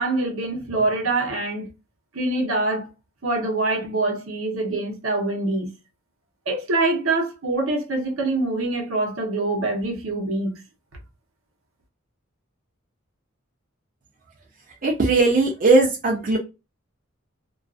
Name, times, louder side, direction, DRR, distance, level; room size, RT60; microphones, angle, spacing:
voice 1, 0.0-1.7 2.1-2.9 3.2-5.7 6.5-10.6, right 2 dB, 75° right, 0.9 m, -24 dB
voice 2, 14.8-16.4, right 3 dB, 40° right, 0.6 m, -18 dB
2.4 x 2.4 x 2.3 m
head